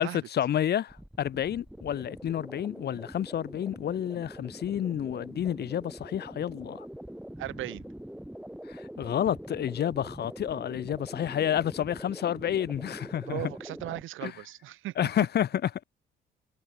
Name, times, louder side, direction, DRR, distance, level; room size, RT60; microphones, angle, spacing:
voice 1, 0.0-6.9 8.7-13.5 14.2-14.3 15.0-15.8, left 10 dB, 55° left, 0.8 m, -30 dB
sound 1, 0.9-14.0, right 1 dB, 5° right, 3.5 m, -44 dB
voice 2, 7.4-7.9 13.3-14.9, right 15 dB, 85° right, 1.7 m, -37 dB
cardioid pair, 90°, 20 cm